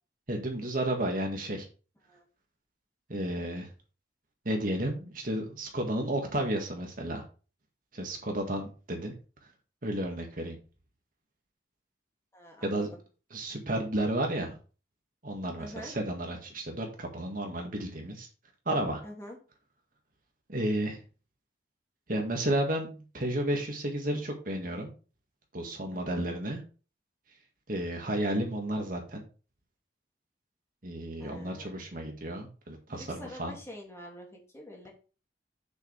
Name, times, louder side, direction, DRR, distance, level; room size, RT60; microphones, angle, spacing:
voice 1, 0.3-1.7 3.1-3.7 4.5-7.2 7.9-9.1 9.8-10.6 12.6-12.9 13.3-14.6 15.2-18.3 18.7-19.0 20.5-21.0 22.1-24.9 25.5-26.6 27.7-29.2 30.8-33.5, right 1 dB, 50° right, 2 dB, 2.0 m, -32 dB
voice 2, 12.3-13.0 15.6-15.9 19.0-19.4 25.9-26.3 31.2-31.9 32.9-34.9, left 1 dB, 15° left, -1 dB, 2.5 m, -46 dB
8.3 x 6.9 x 3.4 m, 0.35 s
head